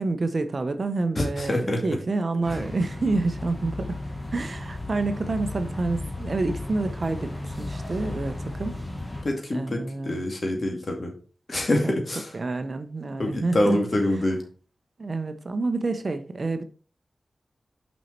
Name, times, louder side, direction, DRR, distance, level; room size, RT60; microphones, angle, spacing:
voice 1, 0.0-4.0 4.3-8.7 9.5-10.2 11.8-11.9 12.3-13.8 15.0-16.6, right 3 dB, 50° right, 0.8 m, -28 dB
voice 2, 1.2-1.8 9.2-11.1 11.5-12.3 13.2-14.4, left 1 dB, 45° left, 2.3 m, -25 dB
sound 1, 2.4-9.2, left 2 dB, 20° left, 1.7 m, -34 dB
6.2 x 5.3 x 4.4 m
cardioid pair, 65°, 0 cm